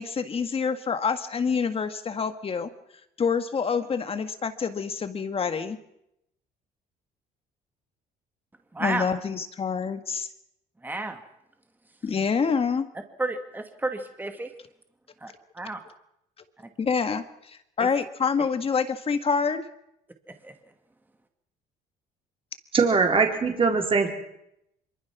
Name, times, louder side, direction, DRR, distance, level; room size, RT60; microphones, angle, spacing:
voice 1, 0.0-2.7 3.2-5.8 8.8-10.3 12.0-12.9 16.8-19.7, left 5 dB, 35° left, 9 dB, 1.8 m, -27 dB
voice 2, 8.7-9.1 10.8-11.2 13.2-14.5 15.2-15.8 20.4-20.5, right 2 dB, 10° right, 6 dB, 2.2 m, -31 dB
voice 3, 22.7-24.1, right 4 dB, 30° right, 2 dB, 4.1 m, -21 dB
24.5 x 23.0 x 6.1 m, 0.80 s
cardioid pair, 110°, 17 cm